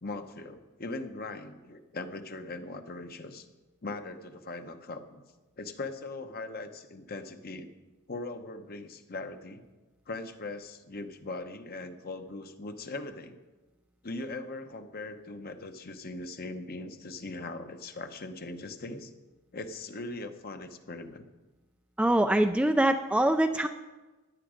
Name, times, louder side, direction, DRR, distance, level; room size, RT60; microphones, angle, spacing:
voice 1, 0.0-3.5 3.8-5.2 5.6-7.7 8.1-9.6 10.1-13.4 14.0-19.1 19.5-21.2, left 2 dB, 45° left, 8 dB, 0.9 m, -40 dB
voice 2, 22.0-23.7, right 1 dB, 5° right, 7 dB, 0.3 m, -24 dB
15.0 x 10.5 x 5.1 m, 1.2 s
head